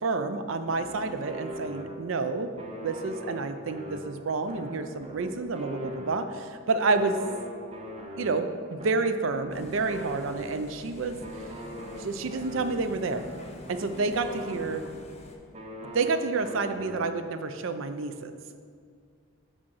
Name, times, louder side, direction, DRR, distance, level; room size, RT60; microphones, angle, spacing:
voice 1, 0.0-2.5 2.8-7.2 8.2-11.2 12.0-13.2 13.7-14.8 15.9-18.3, right 3 dB, 65° right, 9 dB, 0.4 m, -29 dB
sound 1, 0.7-2.2 2.6-6.5 6.9-10.8 11.2-15.2 15.5-17.4, equal, 30° right, 0.7 m, -41 dB
sound 2, 9.5-15.4, left 1 dB, 30° left, 0.7 m, -47 dB
5.1 x 4.8 x 5.5 m, 2.1 s
head